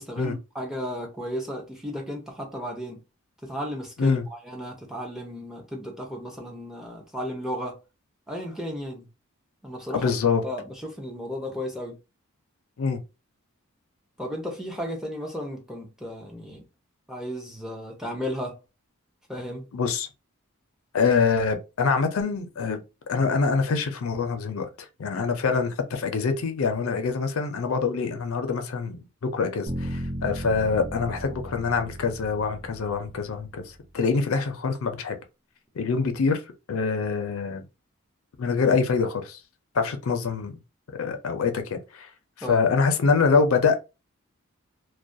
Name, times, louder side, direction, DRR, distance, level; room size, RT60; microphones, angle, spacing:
voice 1, 0.0-3.0 3.4-7.8 8.3-9.1 9.6-10.1 10.4-12.0 14.2-16.6 17.1-18.6 19.3-19.7 42.4-42.6, equal, ahead, 0.5 m, -34 dB
voice 2, 9.9-10.4 12.8-13.0 19.7-20.1 20.9-22.8 23.1-24.7 25.0-35.1 35.8-36.4 36.7-37.6 38.4-39.4 39.7-40.5 40.9-42.1 42.5-43.8, left 5 dB, 70° left, 0.4 m, -25 dB
sound 1, 29.7-33.8, equal, 30° right, 0.9 m, -36 dB
2.3 x 2.1 x 2.6 m
head